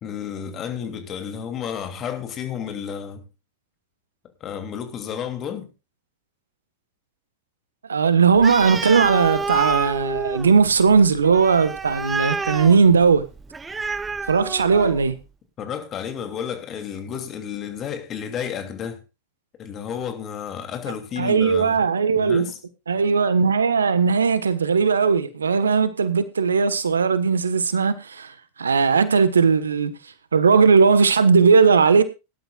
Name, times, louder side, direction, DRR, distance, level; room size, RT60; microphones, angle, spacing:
voice 1, 0.0-3.2 4.4-5.7 15.6-19.0 19.6-21.8 22.2-22.6, left 8 dB, 35° left, 2.8 m, -31 dB
voice 2, 7.9-13.2 14.3-15.2 21.2-22.5 22.9-28.3 28.6-29.9 30.3-32.0, right 5 dB, 80° right, 1.3 m, -18 dB
Animal, 8.4-15.1, right 4 dB, 15° right, 0.8 m, -29 dB
18.5 x 11.5 x 2.4 m
figure-of-eight pair, 90°, 0 cm